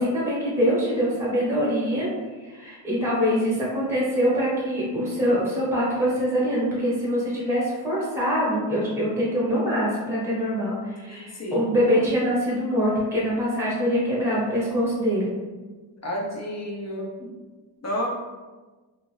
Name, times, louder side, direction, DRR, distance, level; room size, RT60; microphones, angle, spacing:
voice 1, 0.0-2.1 2.4-15.3 17.2-17.3, equal, 5° right, -6 dB, 0.9 m, -24 dB
voice 2, 11.1-11.7 16.0-17.1 17.8-18.1, equal, 35° left, -2 dB, 0.5 m, -30 dB
2.6 x 2.3 x 3.1 m, 1.3 s
wide cardioid pair, 165°, 46 cm